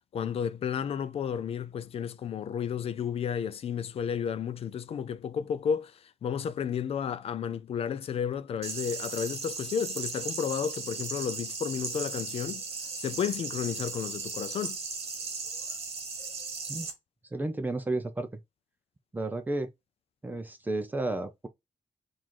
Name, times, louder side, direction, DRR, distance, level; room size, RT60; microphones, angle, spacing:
voice 1, 0.1-12.6 13.0-14.8, left 7 dB, 55° left, 0.4 m, -32 dB
sound 1, 8.6-16.9, right 4 dB, 60° right, 1.2 m, -37 dB
voice 2, 17.3-18.4 19.1-19.7 20.2-21.5, right 2 dB, 15° right, 0.4 m, -32 dB
3.7 x 2.5 x 4.6 m
wide cardioid pair, 170°, 12 cm